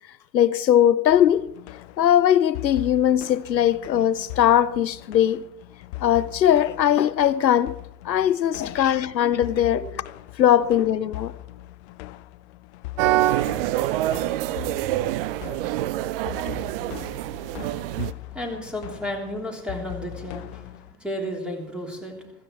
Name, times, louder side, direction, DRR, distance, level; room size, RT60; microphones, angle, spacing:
voice 1, 0.3-1.5 2.0-5.4 6.0-7.8 8.0-9.8 10.4-11.3, left 10 dB, 85° left, 0.6 m, -20 dB
sound 1, 1.1-21.0, left 18 dB, 45° left, 0.6 m, -40 dB
sound 2, 13.0-18.1, right 15 dB, 35° right, 0.5 m, -25 dB
voice 2, 16.1-22.3, equal, ahead, 3.4 m, -35 dB
15.5 x 15.0 x 4.7 m
figure-of-eight pair, 95°, 50 cm